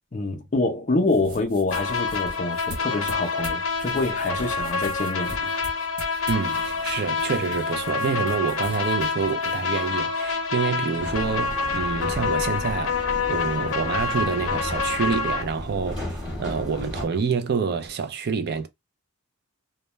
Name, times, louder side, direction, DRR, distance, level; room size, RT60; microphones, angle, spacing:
voice 1, 0.1-5.5, left 2 dB, 35° left, 0.5 m, -26 dB
sound 1, 1.0-10.7, right 1 dB, 80° right, 0.8 m, -43 dB
sound 2, 1.7-15.4, left 5 dB, 80° left, 0.7 m, -27 dB
voice 2, 6.3-18.7, right 5 dB, 45° right, 0.4 m, -27 dB
sound 3, 11.0-17.1, left 1 dB, 5° right, 1.1 m, -35 dB
2.2 x 2.1 x 3.0 m
head